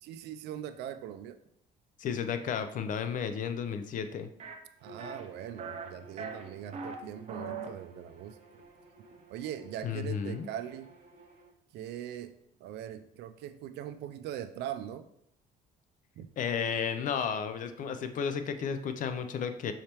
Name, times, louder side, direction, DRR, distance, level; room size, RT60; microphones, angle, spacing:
voice 1, 0.0-1.4 4.8-8.4 9.3-10.9 11.7-12.3 12.6-15.1 16.2-16.3, right 10 dB, 80° right, 11 dB, 0.4 m, -41 dB
voice 2, 2.0-4.3 9.8-10.5 16.4-19.7, left 7 dB, 50° left, 9 dB, 0.5 m, -33 dB
sound 1, 4.4-4.6 5.0-5.3 5.6-5.9 6.2-7.0 7.3-7.7, right 5 dB, 40° right, 0.6 m, -39 dB
Bowed string instrument, 4.8-11.5, right 2 dB, 60° right, 1.6 m, -55 dB
5.6 x 3.3 x 2.9 m, 0.73 s
cardioid pair, 110°, 17 cm